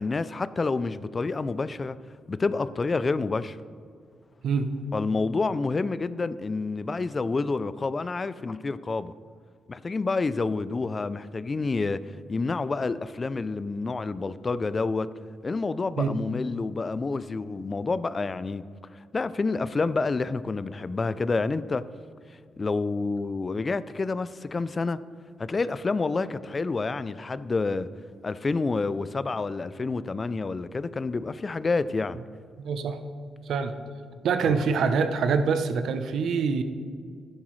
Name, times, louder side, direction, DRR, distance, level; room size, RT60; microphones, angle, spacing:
voice 1, 0.0-2.0 2.3-3.6 4.9-9.1 9.7-15.1 15.4-18.6 18.9-21.8 22.6-25.0 25.4-27.9 28.2-32.2 34.4-34.6, left 3 dB, 35° left, 0.4 m, -28 dB
voice 2, 32.6-33.0 33.5-33.7 34.2-36.6, right 5 dB, 75° right, 0.7 m, -25 dB
11.5 x 10.0 x 3.2 m
cardioid pair, 85°, 0 cm